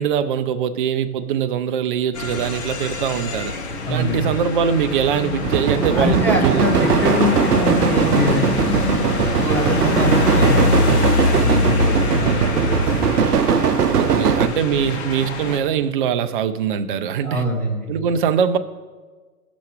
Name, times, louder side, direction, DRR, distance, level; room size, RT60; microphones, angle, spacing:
voice 1, 0.0-3.5 3.9-6.7 13.9-17.4 17.9-18.6, right 8 dB, 35° right, 0.4 m, -22 dB
sound 1, 2.1-15.6, left 4 dB, 45° left, 1.5 m, -24 dB
voice 2, 3.9-4.3 5.9-8.7 9.3-13.1 14.1-14.3 17.2-17.9, left 1 dB, 5° left, 1.3 m, -24 dB
sound 2, 5.4-14.5, right 7 dB, 80° right, 0.7 m, -19 dB
15.5 x 6.0 x 3.3 m
figure-of-eight pair, 115°, 45 cm